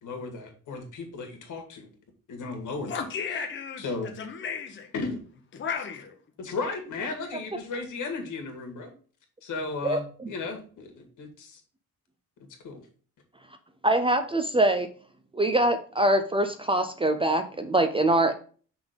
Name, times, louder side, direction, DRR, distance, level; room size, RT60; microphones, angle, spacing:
voice 1, 0.0-1.9 2.3-3.1 3.8-4.1 4.9-5.2 6.4-8.9 9.4-11.6 12.6-12.8, left 3 dB, 70° left, 4 dB, 1.9 m, -35 dB
voice 2, 2.9-3.8 4.2-4.9 5.5-6.2, left 6 dB, 35° left, 3 dB, 0.9 m, -34 dB
voice 3, 9.8-10.3 13.8-14.9 15.3-18.3, right 1 dB, 15° right, 7 dB, 0.4 m, -24 dB
5.9 x 3.6 x 5.1 m, 0.41 s
cardioid pair, 155°, 32 cm